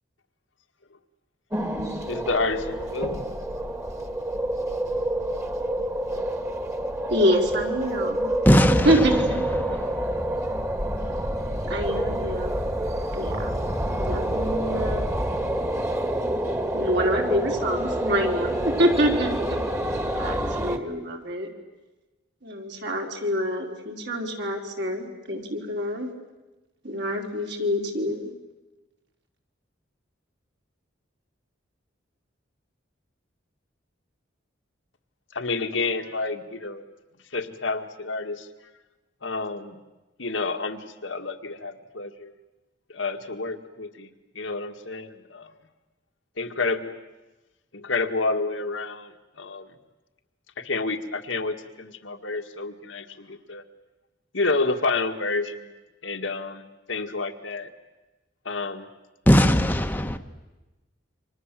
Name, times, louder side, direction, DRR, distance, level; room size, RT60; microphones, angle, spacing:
sound 1, 1.5-20.8, right 1 dB, 15° right, 1.8 m, -28 dB
voice 1, 2.1-3.3 35.3-36.8 37.3-38.5 39.2-39.8 40.2-42.3 42.9-44.1 44.4-45.5 46.4-46.9 47.7-49.1 49.4-49.7 50.6-53.6 54.3-55.7 56.0-57.7 58.5-58.9, left 3 dB, 80° left, 2.0 m, -29 dB
voice 2, 7.1-8.3 8.8-9.8 11.7-12.6 13.1-13.5 13.9-15.1 16.7-19.6 20.2-21.5 22.4-26.1 26.8-28.2, equal, 60° right, 4.2 m, -26 dB
voice 3, 8.4-9.0 9.6-10.1 59.3-60.2, equal, 10° left, 1.1 m, -19 dB
29.5 x 25.5 x 7.7 m
head